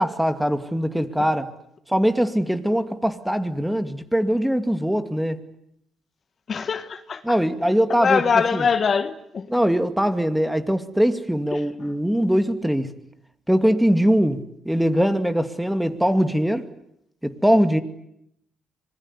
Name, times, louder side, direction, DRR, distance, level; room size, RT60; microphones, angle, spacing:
voice 1, 0.0-1.5 1.9-5.4 7.2-8.2 8.5-8.6 9.5-12.9 13.5-16.7 17.2-17.8, equal, 5° right, 2.3 m, -21 dB
voice 2, 6.5-7.4 7.9-9.5 11.5-11.9, left 6 dB, 45° left, 1.6 m, -23 dB
25.5 x 21.0 x 9.8 m
cardioid pair, 90°, 0 cm